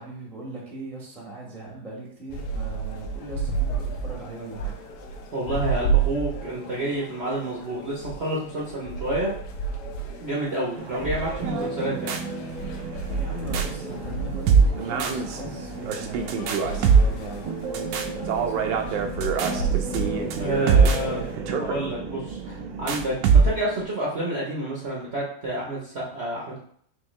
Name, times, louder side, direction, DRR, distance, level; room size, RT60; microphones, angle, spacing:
voice 1, 0.0-4.7 13.1-20.1 21.0-21.3, right 2 dB, ahead, -3 dB, 0.7 m, -39 dB
sound 1, 2.3-21.4, right 4 dB, 70° left, 1.0 m, -32 dB
voice 2, 5.3-9.3 10.2-12.2 20.4-21.2 21.6-26.6, right 1 dB, 50° right, -6 dB, 0.8 m, -29 dB
sound 2, 10.8-23.8, right 5 dB, 75° right, 1.2 m, -24 dB
4.6 x 3.3 x 3.1 m, 0.64 s
omnidirectional pair, 2.2 m